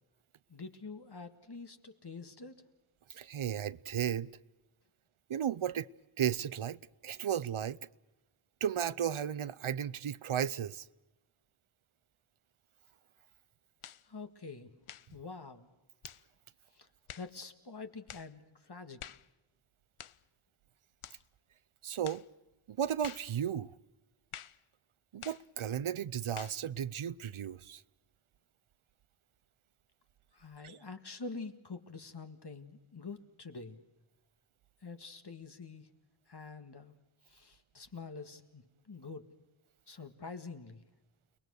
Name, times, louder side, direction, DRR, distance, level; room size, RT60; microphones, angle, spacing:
voice 1, 0.5-2.6 14.0-14.7 15.1-15.7 16.7-16.9 17.2-19.0 30.3-33.8 34.8-35.9 36.3-36.9 37.3-39.3 39.9-40.8, left 4 dB, 50° left, 1.9 m, -46 dB
voice 2, 3.1-4.3 5.3-5.9 6.2-7.8 8.6-10.9 21.8-22.2 22.7-23.7 25.1-27.8 30.6-30.8, right 9 dB, 75° right, 0.7 m, -34 dB
sound 1, 13.8-14.1 14.8-15.1 16.0-16.3 17.1-17.3 18.1-18.3 19.0-19.3 20.0-20.2 21.0-21.2 22.0-22.3 23.0-23.3 24.3-24.6 25.2-25.5 26.4-26.6, left 9 dB, 80° left, 0.7 m, -48 dB
29.5 x 20.0 x 6.5 m
wide cardioid pair, 75°, 49 cm